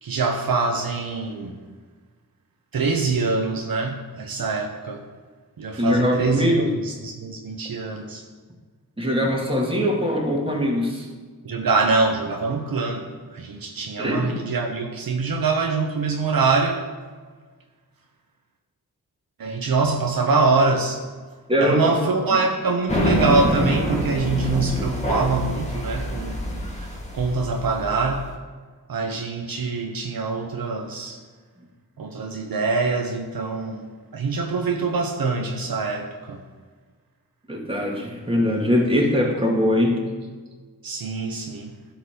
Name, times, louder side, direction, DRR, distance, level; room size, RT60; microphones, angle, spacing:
voice 1, 0.0-1.5 2.7-5.0 5.6-8.2 11.4-13.1 13.3-16.8 19.4-21.0 21.6-26.4 26.7-28.2 28.9-31.2 32.0-33.8 34.1-36.4 40.8-41.7, right 4 dB, 65° right, 2 dB, 1.0 m, -24 dB
voice 2, 5.8-6.7 9.0-11.1 14.0-14.4 21.5-22.0 22.2-22.3 37.5-40.0, equal, 15° right, -1 dB, 2.3 m, -22 dB
sound 1, 22.9-28.2, equal, 20° left, 2.1 m, -26 dB
11.5 x 4.1 x 6.9 m, 1.5 s
cardioid pair, 55°, 37 cm